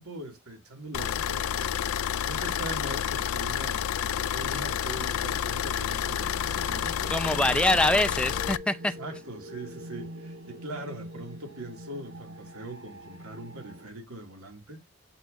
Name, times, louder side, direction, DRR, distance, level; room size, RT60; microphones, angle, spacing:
voice 1, 0.0-7.8 8.1-8.2 8.9-14.8, right 1 dB, 90° right, 2.4 m, -41 dB
sound 1, 0.9-8.6, left 9 dB, 80° left, 0.4 m, -29 dB
sound 2, 4.0-13.9, equal, 60° right, 1.7 m, -45 dB
voice 2, 7.1-8.9, left 1 dB, 5° left, 0.5 m, -24 dB
8.3 x 5.9 x 2.6 m
head